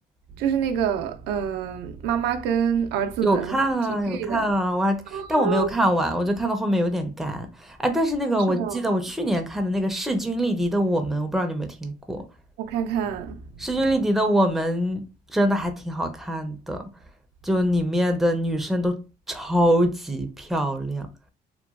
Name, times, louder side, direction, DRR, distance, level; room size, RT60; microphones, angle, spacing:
voice 1, 0.4-3.6 3.9-4.5 5.1-5.7 8.5-8.8 12.6-13.7, right 8 dB, 85° right, 0.4 m, -27 dB
voice 2, 3.2-12.2 13.6-16.8 17.4-19.0 19.3-21.1, equal, ahead, 0.4 m, -24 dB
2.8 x 2.2 x 2.3 m
cardioid pair, 110°, 17 cm